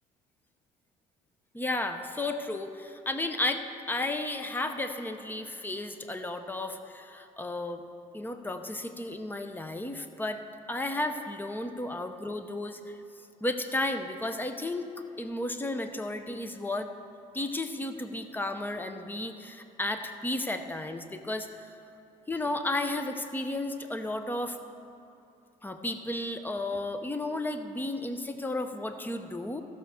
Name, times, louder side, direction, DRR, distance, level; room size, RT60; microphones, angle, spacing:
voice 1, 1.5-7.8 8.1-10.4 10.7-13.0 13.4-14.8 15.2-16.9 17.3-21.5 22.3-24.6 25.6-29.6, left 2 dB, 10° left, 7 dB, 0.7 m, -33 dB
14.0 x 5.6 x 6.4 m, 2.8 s
cardioid pair, 110°, 17 cm